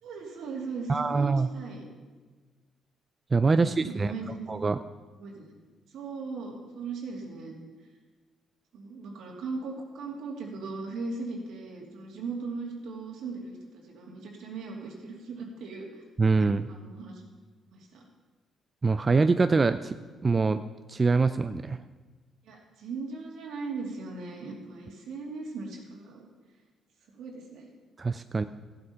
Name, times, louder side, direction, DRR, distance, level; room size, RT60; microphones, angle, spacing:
voice 1, 0.0-1.8 3.6-4.4 5.2-5.5 5.9-7.5 8.7-15.9 16.7-17.2 17.7-18.0 22.4-26.3 27.1-27.7, right 4 dB, 80° right, 0 dB, 2.7 m, -38 dB
voice 2, 0.9-1.5 3.3-4.1 4.5-4.8 16.2-16.7 18.8-20.0 20.2-20.6 20.9-21.8 28.0-28.4, right 4 dB, 30° right, 10 dB, 0.4 m, -24 dB
14.5 x 7.9 x 5.6 m, 1.4 s
cardioid pair, 90°, 0 cm